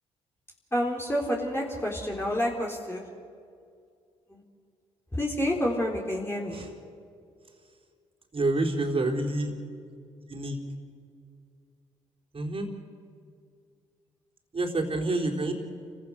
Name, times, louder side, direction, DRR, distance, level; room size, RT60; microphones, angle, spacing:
voice 1, 0.7-3.0 4.3-4.4 5.1-6.6, equal, 15° left, -2 dB, 3.9 m, -29 dB
voice 2, 8.3-9.5 10.3-10.6 12.3-12.7 14.5-15.5, right 2 dB, 40° right, 1 dB, 4.2 m, -28 dB
29.0 x 16.0 x 6.6 m, 2.3 s
hypercardioid pair, 45°, 15 cm